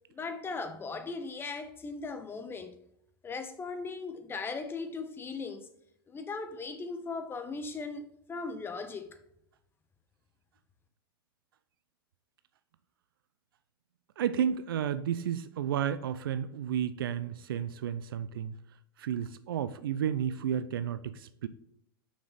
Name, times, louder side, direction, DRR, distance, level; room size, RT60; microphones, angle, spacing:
voice 1, 0.1-2.7 3.2-5.7 6.1-9.1, left 4 dB, 20° left, 0.9 m, -38 dB
voice 2, 14.2-18.5 19.0-21.5, right 9 dB, 65° right, 0.5 m, -32 dB
6.5 x 5.8 x 3.7 m
figure-of-eight pair, 90°, 12 cm